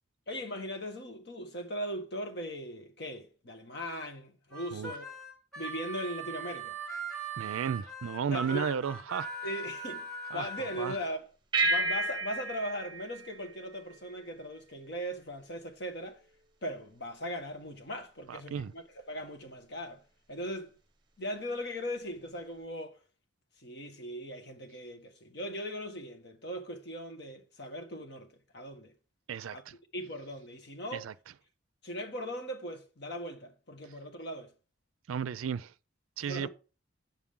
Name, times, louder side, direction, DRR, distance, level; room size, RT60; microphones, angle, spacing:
voice 1, 0.3-5.1 5.6-6.7 8.3-8.7 9.4-10.1 10.3-11.3 11.6-16.2 16.6-20.0 20.3-20.7 21.2-23.0 23.6-28.3 28.5-28.9 29.5-29.6 29.9-31.1 31.8-34.5 36.3-36.5, equal, 55° left, 1.5 m, -39 dB
Harmonica, 4.5-11.1, right 3 dB, 5° left, 2.2 m, -40 dB
voice 2, 7.4-9.3 10.3-11.0 18.3-18.7 29.3-29.8 30.9-31.1 35.1-35.7 36.2-36.5, right 7 dB, 90° right, 0.4 m, -34 dB
sound 1, 11.5-14.3, right 2 dB, 20° right, 0.9 m, -32 dB
9.2 x 7.2 x 3.7 m
head